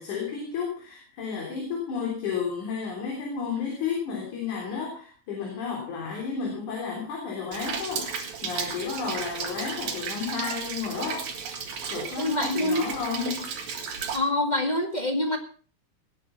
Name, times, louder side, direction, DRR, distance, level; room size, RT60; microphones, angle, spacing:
voice 1, 0.0-11.3 11.9-13.4, left 6 dB, 75° left, -1 dB, 5.0 m, -32 dB
Rain, 7.5-14.2, right 6 dB, 70° right, 3.6 m, -34 dB
voice 2, 12.2-12.8 14.1-15.4, left 1 dB, 20° left, 5 dB, 1.3 m, -25 dB
19.0 x 9.7 x 5.7 m, 0.42 s
omnidirectional pair, 3.5 m